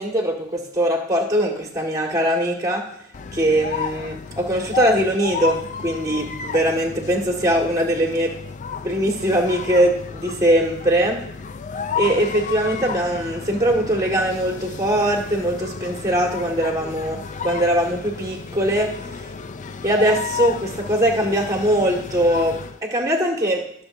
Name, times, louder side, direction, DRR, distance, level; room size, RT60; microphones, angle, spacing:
voice 1, 0.0-2.9 3.3-8.4 8.8-11.2 11.9-19.3 19.8-23.7, right 1 dB, 15° right, 0 dB, 1.7 m, -21 dB
sound 1, 3.1-22.8, left 6 dB, 35° left, 0.4 m, -32 dB
21.0 x 7.1 x 2.6 m, 0.71 s
head